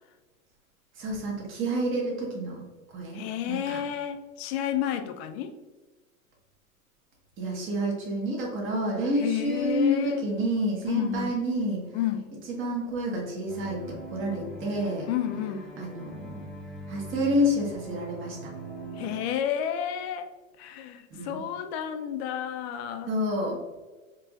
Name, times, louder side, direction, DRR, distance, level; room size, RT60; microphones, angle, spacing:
voice 1, 1.0-2.6 2.9-3.8 7.4-11.8 12.5-15.1 15.8-16.5 16.9-18.4 21.1-21.4 23.1-23.6, equal, 30° right, -2 dB, 1.4 m, -29 dB
voice 2, 3.1-5.5 9.2-10.3 10.9-11.3 11.9-12.3 15.1-15.7 19.0-20.3 20.6-23.1, left 10 dB, 50° left, 8 dB, 0.6 m, -31 dB
sound 1, 13.5-19.2, right 1 dB, ahead, 0.9 m, -42 dB
4.7 x 3.1 x 2.4 m, 1.3 s
hypercardioid pair, 120°, 42 cm